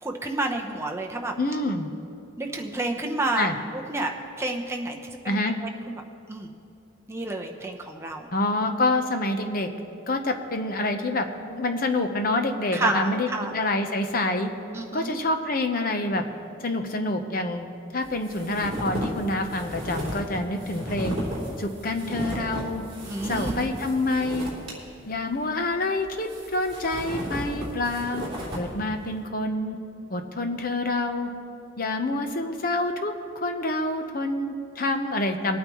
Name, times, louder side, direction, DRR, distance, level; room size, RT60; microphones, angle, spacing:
voice 1, 0.0-1.3 2.4-3.5 3.7-5.3 5.6-6.0 6.3-6.5 7.1-8.3 12.7-13.5 14.7-15.2 23.0-23.7, right 2 dB, 15° right, 1 dB, 0.8 m, -30 dB
voice 2, 1.4-1.9 3.3-3.6 5.2-5.6 8.3-9.7 10.1-14.5 14.9-16.2 16.6-17.7 17.9-21.2 21.6-22.9 23.2-24.5 25.1-28.3 28.5-29.8 30.1-31.3 31.8-35.6, left 2 dB, 45° left, 6 dB, 0.8 m, -27 dB
sound 1, 18.0-24.7 25.1-25.2 26.0-28.7, right 1 dB, 30° right, 3.2 m, -34 dB
21.5 x 9.0 x 3.1 m, 2.6 s
head